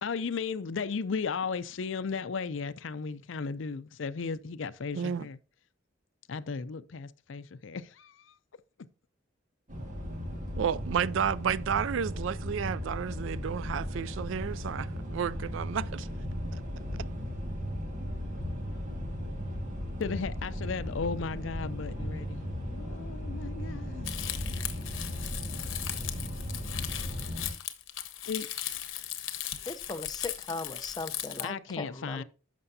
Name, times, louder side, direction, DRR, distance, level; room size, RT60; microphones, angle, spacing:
voice 1, 0.0-5.4 6.3-8.3 20.0-22.4 22.7-24.1 28.3-28.5 31.4-32.2, left 5 dB, 70° left, 0.5 m, -35 dB
voice 2, 4.9-5.3 10.6-16.1 16.5-16.6, right 7 dB, 75° right, 0.4 m, -31 dB
sound 1, 9.7-27.5, equal, 40° right, 1.8 m, -36 dB
Crumpling crinkling, 24.0-31.5, left 12 dB, 90° left, 0.9 m, -38 dB
voice 3, 29.7-32.2, left 3 dB, 20° left, 0.7 m, -38 dB
11.0 x 6.7 x 2.7 m
head